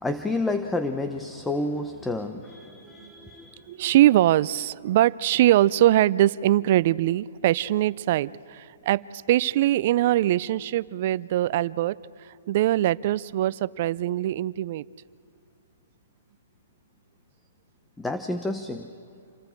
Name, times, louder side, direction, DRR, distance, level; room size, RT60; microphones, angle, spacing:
voice 1, 0.0-3.7 18.0-18.9, left 2 dB, 5° left, 7 dB, 0.8 m, -30 dB
voice 2, 2.8-3.3 3.7-12.0 12.5-14.8, right 14 dB, 45° right, 20 dB, 0.5 m, -22 dB
28.5 x 24.5 x 4.6 m, 2.3 s
hypercardioid pair, 140°, 0 cm